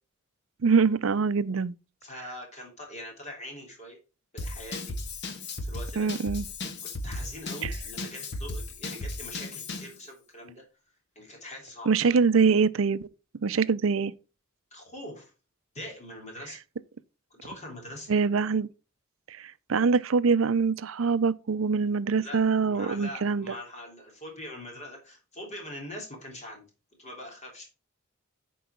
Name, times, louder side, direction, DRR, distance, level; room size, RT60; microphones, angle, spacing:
voice 1, 0.6-1.7 6.0-6.4 7.6-7.7 11.9-13.1 13.4-14.1 18.1-18.7 19.3-23.5, right 5 dB, 70° right, 0.5 m, -24 dB
voice 2, 2.0-4.0 4.3-5.0 5.6-6.1 6.8-10.6 11.1-12.2 14.7-15.3 15.7-16.6 17.3-18.1 22.2-22.4 22.7-26.6 27.0-27.7, left 1 dB, 35° left, 3.3 m, -42 dB
Drum kit / Drum, 4.4-10.0, left 2 dB, 55° left, 1.4 m, -36 dB
11.0 x 4.7 x 4.5 m
head